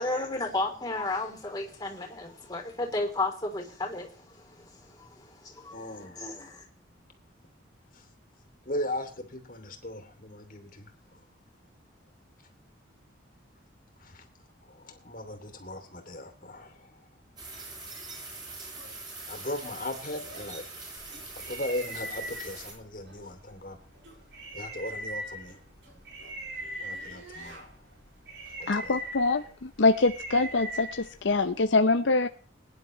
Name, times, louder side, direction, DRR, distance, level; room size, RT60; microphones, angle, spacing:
voice 1, 0.0-6.6, left 2 dB, 20° left, 3.3 m, -33 dB
voice 2, 5.7-6.3 7.9-8.0 8.7-11.2 14.0-14.3 14.6-17.1 19.3-20.6 21.4-23.8 24.5-25.6 26.8-27.8 28.6-29.0, left 1 dB, 45° left, 2.8 m, -38 dB
sound 1, 17.4-22.7, right 3 dB, 20° right, 7.7 m, -43 dB
sound 2, 18.7-18.9 19.6-19.8 20.3-20.5 21.1-21.3 21.9-22.1 23.0-23.3 24.0-24.2 24.9-25.0 25.5-27.7, right 2 dB, 85° right, 6.6 m, -51 dB
sound 3, 21.0-31.6, right 1 dB, 60° right, 7.0 m, -42 dB
voice 3, 28.7-32.3, left 3 dB, 70° left, 0.7 m, -24 dB
22.5 x 10.5 x 3.2 m
head